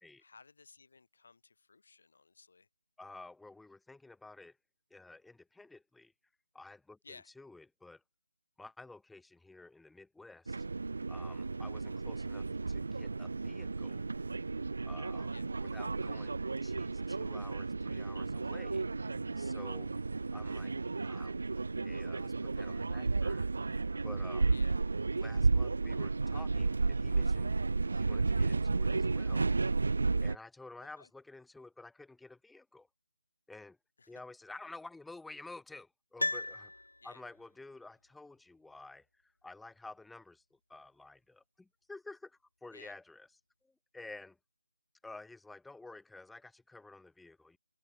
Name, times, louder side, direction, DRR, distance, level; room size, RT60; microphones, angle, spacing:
voice 1, 0.2-2.7 7.0-7.3 11.4-11.6 15.3-15.5 24.5-24.9 31.0-31.1 34.0-34.2 37.0-37.2 42.7-43.0, left 4 dB, 60° left, 7.8 m, -57 dB
voice 2, 3.0-4.6 4.9-6.1 6.5-7.0 7.4-8.0 8.6-10.7 11.1-14.0 14.8-15.3 15.6-19.9 20.3-20.8 21.0-21.4 21.8-23.5 24.0-24.6 25.2-27.6 27.9-29.5 30.2-32.9 33.5-33.8 34.1-36.7 37.0-43.3 43.6-44.4 45.0-47.6, left 2 dB, ahead, 4.0 m, -52 dB
sound 1, 10.5-30.4, right 3 dB, 65° right, 1.0 m, -33 dB
Piano, 36.2-37.4 37.7-37.8, left 1 dB, 90° left, 1.8 m, -36 dB
open air
figure-of-eight pair, 155°, 0 cm